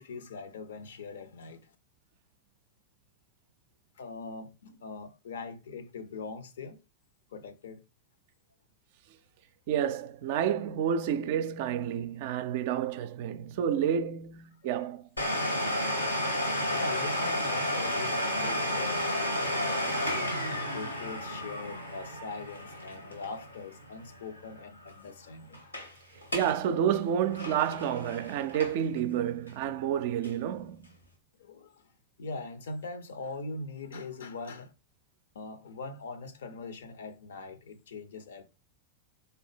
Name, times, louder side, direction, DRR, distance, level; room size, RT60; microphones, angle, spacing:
voice 1, 0.0-1.7 4.0-6.8 7.3-7.8 14.6-14.7 16.7-20.0 20.4-25.8 31.4-31.9 32.2-34.7 35.3-38.5, left 4 dB, 65° left, 0.5 m, -42 dB
voice 2, 9.7-15.1 26.3-30.9, right 9 dB, 50° right, 0.3 m, -30 dB
Domestic sounds home sounds, 15.2-24.6 24.9-25.0 25.5-25.9 26.2-26.6 26.9-29.0 29.5-29.6 30.2-30.3, left 1 dB, 85° left, 1.1 m, -32 dB
3.8 x 2.9 x 3.4 m
figure-of-eight pair, 90°, 0 cm